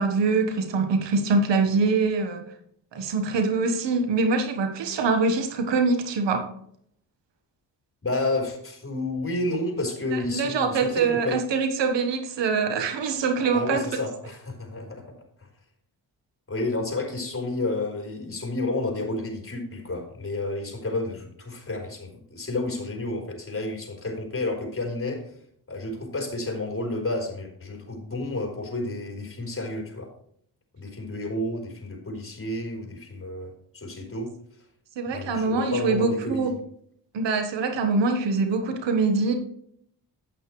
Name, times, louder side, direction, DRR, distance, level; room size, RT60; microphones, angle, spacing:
voice 1, 0.0-2.4 2.9-6.5 10.1-13.8 35.0-36.5 37.1-39.3, right 4 dB, 85° right, 6 dB, 1.4 m, -24 dB
voice 2, 8.0-11.4 13.5-15.5 16.5-25.2 25.7-30.1 30.8-34.3 35.1-36.5, left 2 dB, 30° left, 1 dB, 3.8 m, -31 dB
8.9 x 8.6 x 3.2 m, 0.65 s
supercardioid pair, 50°, 42 cm